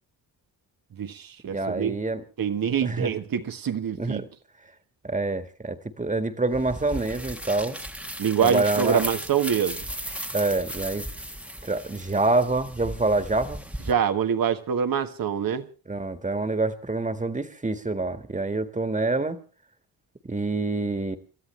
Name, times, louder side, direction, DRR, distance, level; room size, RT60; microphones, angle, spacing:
voice 1, 0.9-1.9 2.4-4.2 8.2-9.9 13.9-15.7, right 8 dB, 65° right, 1.5 m, -25 dB
voice 2, 1.4-2.2 2.8-3.1 4.0-4.3 5.0-7.8 8.4-9.0 10.3-11.1 11.6-13.6 15.9-19.4 20.2-21.2, right 2 dB, 20° right, 1.8 m, -26 dB
sound 1, 6.5-13.9, right 1 dB, 5° right, 1.2 m, -36 dB
29.0 x 13.0 x 3.4 m
cardioid pair, 85°, 37 cm